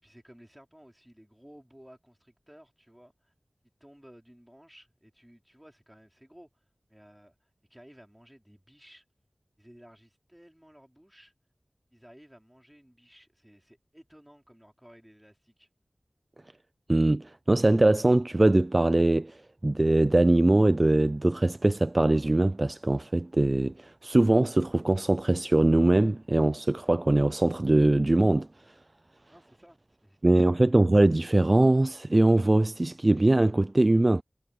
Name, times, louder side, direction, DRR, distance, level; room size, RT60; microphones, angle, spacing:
voice 1, 0.0-3.3 3.8-9.0 9.6-11.3 11.9-15.7 29.3-30.6, equal, 5° right, 5.0 m, -55 dB
voice 2, 16.9-28.5 30.2-34.2, right 2 dB, 40° right, 0.4 m, -22 dB
wide cardioid pair, 50°, 0 cm